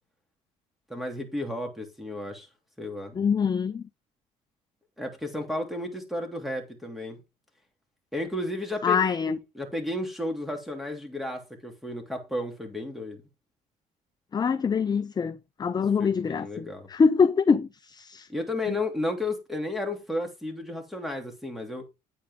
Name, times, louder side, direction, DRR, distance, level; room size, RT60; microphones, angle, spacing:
voice 1, 0.9-2.5 2.8-3.1 5.0-7.2 8.1-13.2 16.0-16.9 18.3-21.8, left 1 dB, ahead, 3.1 m, -33 dB
voice 2, 3.2-3.8 8.8-9.4 14.3-18.3 18.7-18.8, left 5 dB, 25° left, 0.5 m, -24 dB
8.9 x 8.5 x 3.6 m
cardioid pair, 110°, 17 cm